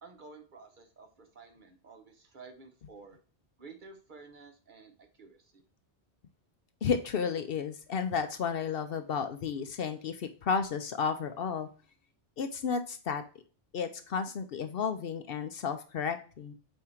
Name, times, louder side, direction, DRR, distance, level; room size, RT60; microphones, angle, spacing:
voice 1, 0.0-3.2 3.6-4.9 5.2-5.6, right 4 dB, 45° right, 4 dB, 1.0 m, -52 dB
voice 2, 6.8-11.7 12.4-13.2 13.7-16.5, left 6 dB, 60° left, 9 dB, 0.8 m, -32 dB
8.4 x 2.8 x 4.4 m, 0.38 s
omnidirectional pair, 1.2 m